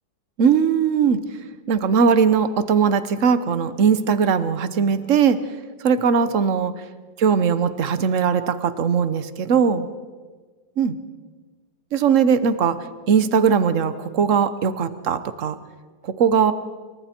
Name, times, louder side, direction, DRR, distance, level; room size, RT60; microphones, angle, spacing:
voice 1, 0.4-1.2 1.7-5.4 5.8-6.7 7.2-9.9 10.8-11.0 11.9-12.8 13.1-15.6 16.0-16.5, right 6 dB, 45° right, 12 dB, 1.2 m, -19 dB
28.5 x 23.0 x 4.5 m, 1.4 s
omnidirectional pair, 2.1 m